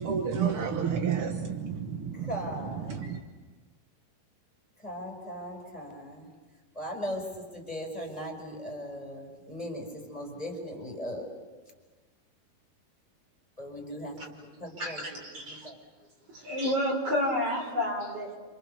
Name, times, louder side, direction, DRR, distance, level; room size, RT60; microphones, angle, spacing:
voice 1, 0.0-2.3 2.9-3.2, right 7 dB, 70° right, 4 dB, 1.3 m, -30 dB
voice 2, 2.1-3.0 4.8-6.3 6.7-11.5 13.6-15.0 15.4-15.8, equal, 10° left, 0 dB, 4.9 m, -38 dB
voice 3, 14.8-15.1 15.5-15.7 16.3-18.4, left 1 dB, 40° right, 1 dB, 5.0 m, -29 dB
28.5 x 28.0 x 6.9 m, 1.3 s
omnidirectional pair, 4.4 m